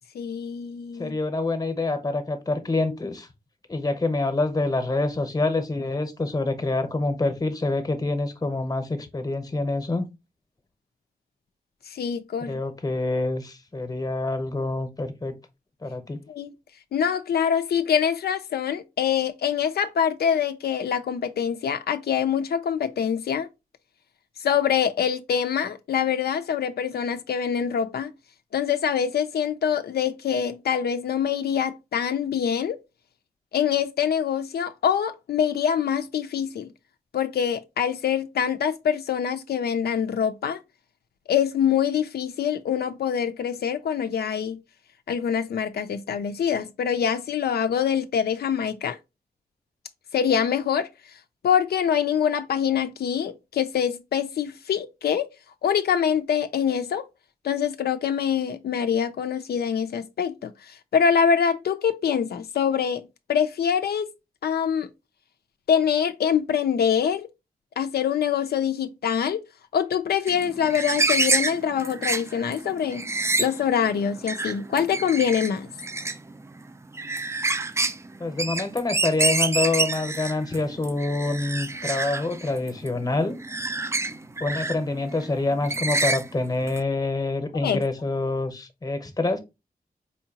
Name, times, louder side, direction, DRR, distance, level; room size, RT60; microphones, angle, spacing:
voice 1, 0.1-1.2 11.9-12.6 16.3-16.5 16.9-23.5 24.4-28.1 28.5-32.8 33.5-36.7 37.1-40.6 41.3-44.6 45.1-49.0 50.1-50.9 51.4-55.3 55.6-57.0 57.4-64.1 64.4-64.9 65.7-67.3 67.8-69.4 69.7-73.1 73.4-75.7 87.6-87.8, left 8 dB, 90° left, 0.4 m, -24 dB
voice 2, 1.0-3.3 3.7-10.1 12.4-15.3 15.8-16.2 78.2-83.4 84.4-89.4, left 2 dB, 25° left, 0.8 m, -26 dB
sound 1, 70.3-86.8, right 2 dB, 15° right, 0.3 m, -28 dB
4.4 x 2.8 x 2.7 m
wide cardioid pair, 105°, 16 cm